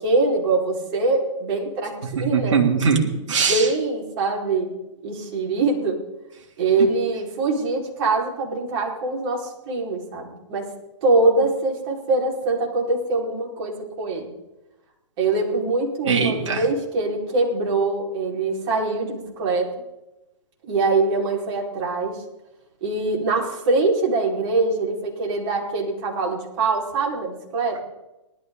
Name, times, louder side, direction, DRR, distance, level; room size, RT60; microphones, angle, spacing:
voice 1, 0.0-2.6 3.3-4.7 5.0-6.0 6.6-10.7 11.0-14.3 15.2-19.7 20.6-22.1 22.8-27.8, right 3 dB, 50° right, -1 dB, 5.1 m, -23 dB
voice 2, 2.3-3.7 16.1-16.6, right 5 dB, 65° right, 0 dB, 3.3 m, -21 dB
19.5 x 12.5 x 4.0 m, 0.97 s
hypercardioid pair, 125°, 17 cm